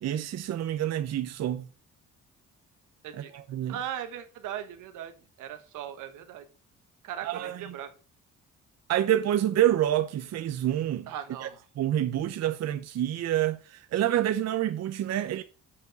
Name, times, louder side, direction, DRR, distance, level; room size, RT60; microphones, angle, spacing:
voice 1, 0.0-1.7 3.1-3.8 7.2-7.7 8.9-11.1 11.4-11.5 11.8-15.4, right 12 dB, 60° right, 0.7 m, -27 dB
voice 2, 3.7-6.4 7.0-7.9 11.1-11.7, right 10 dB, 90° right, 1.3 m, -38 dB
7.4 x 4.6 x 6.3 m
cardioid pair, 90°, 30 cm